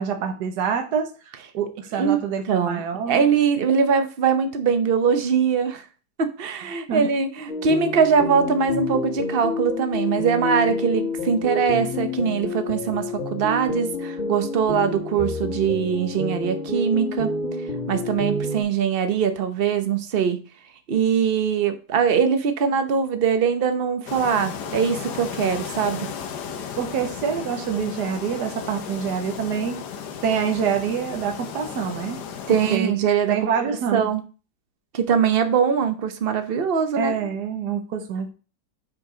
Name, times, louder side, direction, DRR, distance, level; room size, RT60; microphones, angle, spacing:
voice 1, 0.0-3.2 6.9-7.1 26.8-29.8 30.2-32.2 32.7-32.9 33.3-34.1 37.0-38.3, right 7 dB, 80° right, 5 dB, 1.5 m, -26 dB
voice 2, 2.5-2.8 3.1-5.8 6.2-17.3 17.9-20.4 20.9-26.1 32.5-33.4 33.9-34.2 34.9-37.1, right 6 dB, 40° right, 8 dB, 1.0 m, -22 dB
sound 1, 7.5-18.6, left 2 dB, 45° left, 2.2 m, -29 dB
sound 2, 24.1-32.8, left 7 dB, 80° left, 1.5 m, -34 dB
6.2 x 4.7 x 5.0 m, 0.35 s
omnidirectional pair, 1.7 m